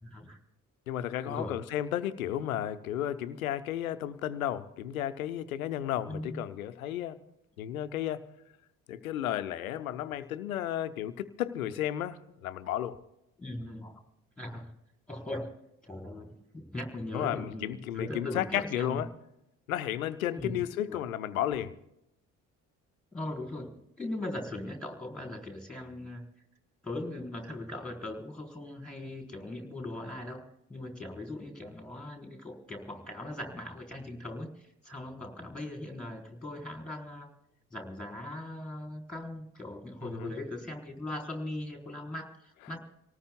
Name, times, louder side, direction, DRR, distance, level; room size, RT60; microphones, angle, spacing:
voice 1, 0.0-0.4 1.2-1.5 6.1-6.4 13.4-14.0 14.4-14.7 15.1-15.5 15.8-19.0 20.4-20.6 20.9-21.0 23.1-26.2 26.8-30.4 30.7-37.3 37.7-42.8, left 1 dB, ahead, 2 dB, 3.9 m, -39 dB
voice 2, 0.9-7.2 7.6-8.2 8.9-13.0 17.1-19.1 19.7-21.7 40.0-40.3, left 11 dB, 80° left, 13 dB, 0.7 m, -33 dB
27.0 x 19.0 x 2.2 m, 0.82 s
figure-of-eight pair, 45°, 42 cm